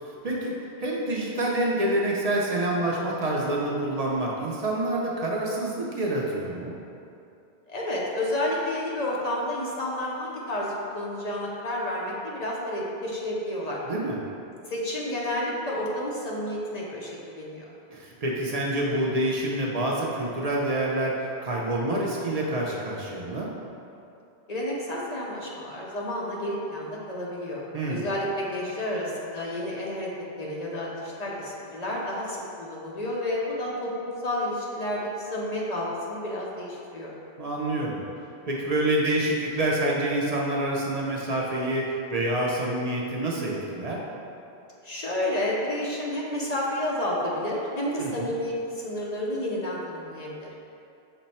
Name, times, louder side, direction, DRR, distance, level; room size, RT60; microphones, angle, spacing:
voice 1, 0.0-6.7 13.9-14.2 17.9-23.5 27.7-28.0 37.4-38.0 38.5-44.0 48.0-48.3, right 1 dB, 50° right, -3 dB, 0.5 m, -27 dB
voice 2, 7.7-13.8 14.7-17.6 24.5-27.6 27.9-30.1 30.4-37.1 44.8-50.5, left 1 dB, 50° left, -4 dB, 0.6 m, -30 dB
6.0 x 2.1 x 4.1 m, 2.7 s
omnidirectional pair, 1.1 m